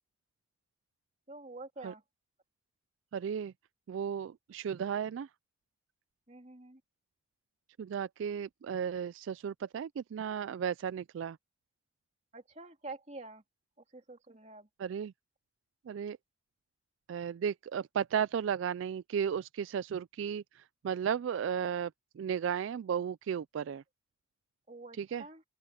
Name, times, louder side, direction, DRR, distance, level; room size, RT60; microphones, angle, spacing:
voice 1, 1.3-2.0 6.3-6.8 12.3-13.4 13.9-14.7 24.7-25.4, right 2 dB, 35° right, 2.8 m, -47 dB
voice 2, 3.1-3.5 3.9-5.3 7.8-11.4 14.8-15.1 15.9-16.2 17.1-23.8 25.0-25.2, right 8 dB, 75° right, 0.3 m, -34 dB
open air
head